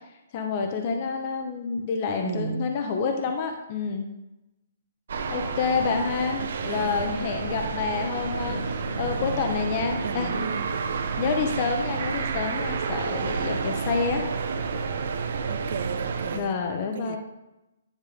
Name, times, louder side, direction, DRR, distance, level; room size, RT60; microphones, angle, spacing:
voice 1, 0.3-4.1 5.3-10.4 11.2-14.2 16.3-17.2, left 5 dB, 30° left, 4 dB, 0.7 m, -28 dB
voice 2, 2.2-2.7 6.4-7.1 10.0-10.7 15.5-16.6 16.9-17.2, right 7 dB, 40° right, 11 dB, 0.5 m, -35 dB
sound 1, 5.1-16.4, right 5 dB, 55° right, 0.8 m, -30 dB
sound 2, 7.1-11.6 14.0-14.2, left 2 dB, 70° left, 2.4 m, -43 dB
10.5 x 3.5 x 5.0 m, 0.94 s
hypercardioid pair, 175°, 0 cm